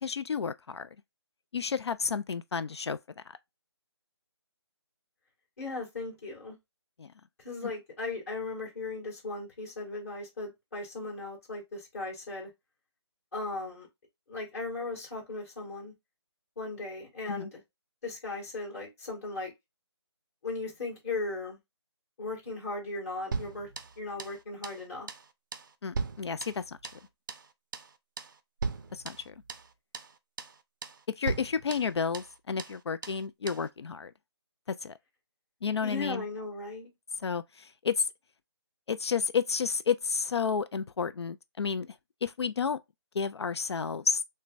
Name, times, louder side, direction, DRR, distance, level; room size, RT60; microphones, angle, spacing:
voice 1, 0.0-0.9 1.5-3.0 3.3-3.4 7.0-7.1 7.6-7.7 17.3-17.5 25.8-26.8 28.9-29.3 31.2-34.1 34.8-35.0 35.6-36.2 37.2-38.1 38.9-42.0 42.2-42.8 43.1-44.2, left 6 dB, 65° left, 0.4 m, -31 dB
voice 2, 5.6-6.6 7.4-12.5 13.3-13.9 14.3-15.9 16.6-17.6 18.0-19.5 20.4-21.6 22.2-23.7 24.0-25.1 35.8-36.9, left 3 dB, 35° left, 2.2 m, -37 dB
sound 1, 23.3-24.4 24.6-24.8 25.1-25.3 25.5-27.0 27.3-27.5 27.7-27.9 28.2-28.4 28.6-29.7 29.9-30.1 30.4-30.6 30.8-31.0 31.3-32.3 32.6-32.8 33.0-33.2 33.5-33.7, right 4 dB, 45° right, 0.4 m, -38 dB
6.5 x 2.2 x 2.5 m
figure-of-eight pair, 165°, 15 cm